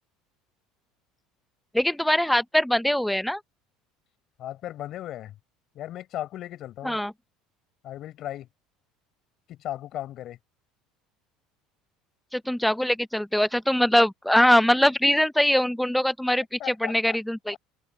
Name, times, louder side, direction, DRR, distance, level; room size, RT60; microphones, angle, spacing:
voice 1, 1.7-3.4 6.8-7.1 12.3-16.4 16.8-17.6, left 1 dB, 5° left, 0.6 m, -22 dB
voice 2, 4.4-5.3 5.8-7.0 7.8-8.5 9.5-10.4 16.6-17.2, left 13 dB, 55° left, 5.6 m, -36 dB
open air
supercardioid pair, 100°, 0 cm